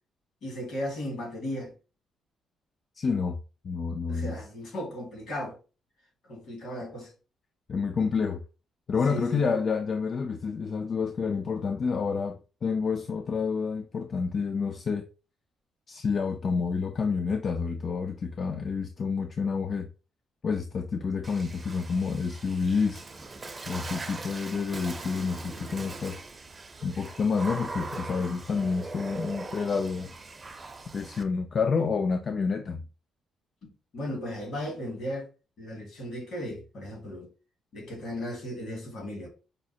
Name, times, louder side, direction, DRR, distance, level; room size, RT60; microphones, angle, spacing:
voice 1, 0.4-1.7 4.1-5.6 6.2-7.1 9.1-9.6 33.6-35.3 35.6-37.3 37.7-39.3, left 1 dB, 65° left, 1.8 m, -36 dB
voice 2, 3.0-3.4 3.6-4.4 7.7-8.4 8.9-15.1 15.9-19.9 20.4-23.0 23.7-26.2 26.8-30.1 30.9-32.8, left 5 dB, 45° left, 0.4 m, -29 dB
Water / Splash splatter, 21.2-31.2, right 3 dB, 30° right, 0.5 m, -41 dB
5.1 x 2.0 x 2.7 m
cardioid pair, 90°, 0 cm